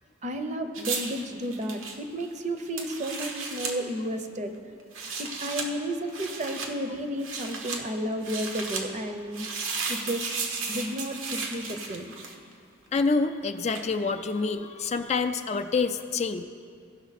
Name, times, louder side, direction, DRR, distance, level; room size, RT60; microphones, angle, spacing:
voice 1, 0.2-4.6 5.2-9.5 9.9-10.4 10.7-12.1, equal, 35° right, 7 dB, 0.7 m, -32 dB
sound 1, 0.7-3.8 4.8-5.7 6.1-6.7 7.2-7.8 8.2-8.8 9.3-12.5 13.7-13.9, right 4 dB, 85° right, 1.1 m, -34 dB
voice 2, 12.9-16.4, left 4 dB, 35° left, 7 dB, 0.3 m, -27 dB
17.0 x 5.9 x 4.1 m, 2.2 s
head